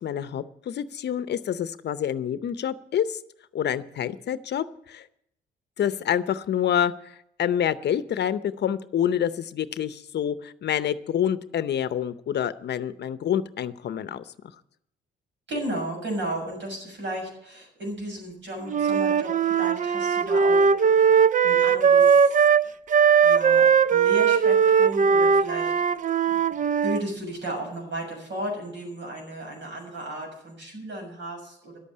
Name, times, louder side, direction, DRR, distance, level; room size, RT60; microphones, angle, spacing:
voice 1, 0.0-3.2 3.5-5.1 5.8-14.2, left 9 dB, 60° left, 13 dB, 0.7 m, -27 dB
voice 2, 15.5-20.7 21.4-22.5 23.2-25.8 26.3-26.4 26.8-31.8, right 1 dB, 65° right, 1 dB, 6.8 m, -34 dB
Wind instrument woodwind instrument, 18.7-27.0, right 6 dB, 40° right, 0.5 m, -19 dB
11.5 x 8.5 x 8.5 m, 0.75 s
cardioid pair, 90°, 20 cm